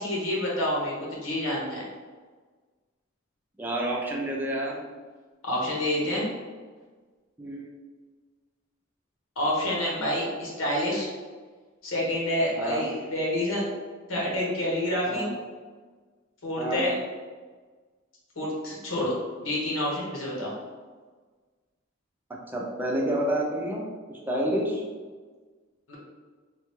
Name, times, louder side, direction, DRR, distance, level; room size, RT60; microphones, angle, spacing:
voice 1, 0.0-1.8 5.4-6.3 9.4-11.1 11.8-13.7 14.1-15.3 16.4-16.9 18.4-19.1 19.4-20.5 25.9-26.0, left 1 dB, 90° left, -4 dB, 1.0 m, -28 dB
voice 2, 3.6-4.8 7.4-7.7 12.6-12.9 15.0-15.3 16.6-16.9 22.5-24.8, right 1 dB, 10° right, -2 dB, 0.5 m, -29 dB
3.3 x 2.3 x 3.1 m, 1.4 s
head